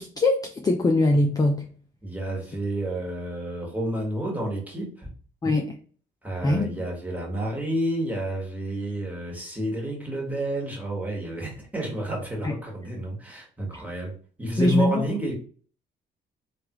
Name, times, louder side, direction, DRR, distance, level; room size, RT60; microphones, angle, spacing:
voice 1, 0.0-1.7 5.4-5.7 6.4-6.7 12.4-12.5 14.6-15.0, left 2 dB, 20° left, 3 dB, 0.4 m, -22 dB
voice 2, 2.0-5.1 6.2-15.3, right 1 dB, 10° right, -2 dB, 1.3 m, -30 dB
3.2 x 2.3 x 2.9 m, 0.43 s
cardioid pair, 90°, 20 cm